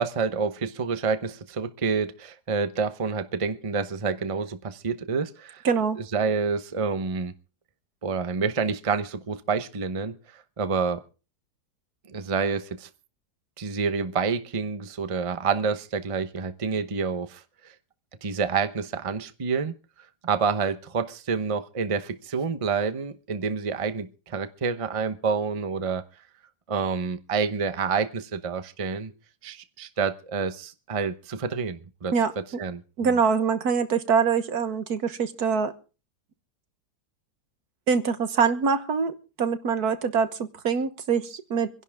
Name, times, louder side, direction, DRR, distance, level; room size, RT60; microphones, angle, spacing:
voice 1, 0.0-5.6 6.1-7.3 8.0-11.0 12.1-12.9 13.6-17.4 18.2-19.7 20.2-26.0 26.7-29.1 29.4-32.1 32.6-33.1, right 5 dB, 25° right, 10 dB, 0.8 m, -28 dB
voice 2, 5.6-6.0 32.1-32.3 33.0-35.7 37.9-41.7, right 6 dB, 70° right, 11 dB, 1.7 m, -24 dB
26.5 x 11.0 x 3.6 m, 0.35 s
omnidirectional pair, 1.7 m